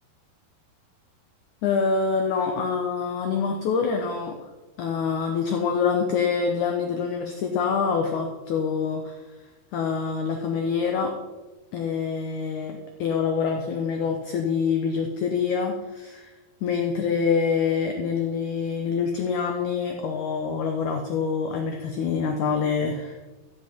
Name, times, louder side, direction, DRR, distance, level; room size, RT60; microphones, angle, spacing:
voice 1, 1.6-4.4 4.8-9.2 9.7-11.1 11.7-16.3 16.6-23.2, left 5 dB, 75° left, 3 dB, 1.8 m, -26 dB
15.0 x 7.8 x 4.4 m, 1.2 s
omnidirectional pair, 4.6 m